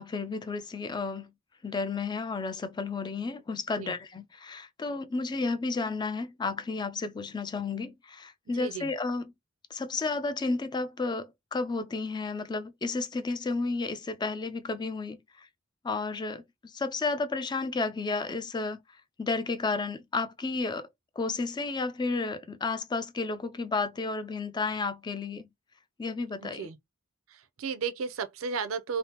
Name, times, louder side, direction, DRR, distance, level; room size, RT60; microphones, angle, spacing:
voice 1, 0.0-1.3 1.6-9.3 9.7-15.5 15.8-18.8 19.2-20.9 21.2-25.5 26.0-26.7, left 3 dB, 20° left, 0.3 m, -32 dB
voice 2, 8.5-8.9 26.4-26.8 27.3-29.0, right 5 dB, 90° right, 0.5 m, -34 dB
3.3 x 2.0 x 2.8 m
head